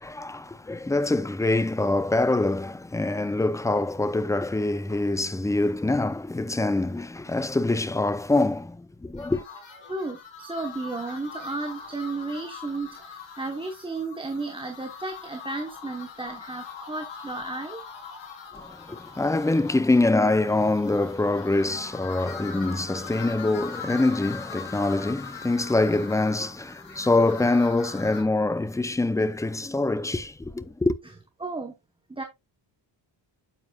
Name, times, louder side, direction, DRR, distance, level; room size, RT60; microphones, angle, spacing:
voice 1, 0.0-9.4 18.5-31.0, left 2 dB, 5° left, 0.4 m, -24 dB
sound 1, 9.2-28.2, left 6 dB, 75° left, 3.6 m, -42 dB
voice 2, 9.9-17.8 31.4-31.7 32.1-32.2, right 3 dB, 10° right, 0.9 m, -33 dB
9.4 x 7.4 x 2.3 m
wide cardioid pair, 150°, 46 cm